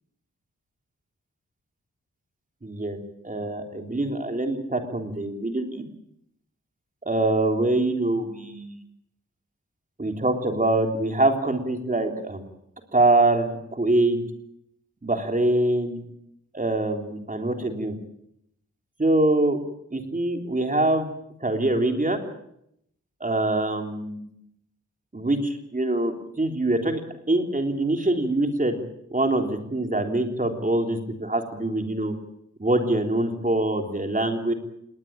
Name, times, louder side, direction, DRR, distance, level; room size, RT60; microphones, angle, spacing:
voice 1, 2.6-3.0 3.2-5.8 7.0-8.8 10.0-12.4 12.9-14.2 15.0-16.0 16.5-17.9 19.0-19.6 19.9-21.1 21.4-22.2 23.2-24.3 25.1-27.0 27.3-28.8 29.1-32.1 32.6-34.5, right 2 dB, 25° right, 4 dB, 3.4 m, -24 dB
21.0 x 18.5 x 8.8 m, 0.76 s
wide cardioid pair, 85°, 30 cm